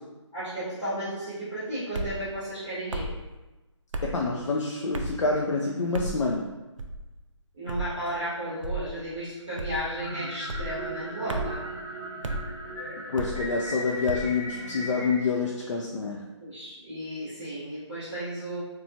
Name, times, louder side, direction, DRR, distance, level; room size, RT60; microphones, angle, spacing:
voice 1, 0.3-3.1 7.5-11.6 16.4-18.6, right 1 dB, ahead, -22 dB, 0.3 m, -34 dB
sound 1, 1.9-2.2 2.9-3.2 3.9-4.2 4.9-5.2 5.9-6.2 6.8-7.1 7.7-7.9 8.6-8.9 9.6-9.9 10.5-10.7 11.3-11.6 12.2-12.4 13.2-13.5 14.1-14.3, right 2 dB, 90° right, 0.4 m, -33 dB
voice 2, 4.0-6.5 13.1-16.2, left 4 dB, 75° left, -2 dB, 0.4 m, -27 dB
sound 2, 10.0-15.2, equal, 35° left, 1.0 m, -37 dB
3.0 x 2.2 x 2.7 m, 1.1 s
hypercardioid pair, 170°, 16 cm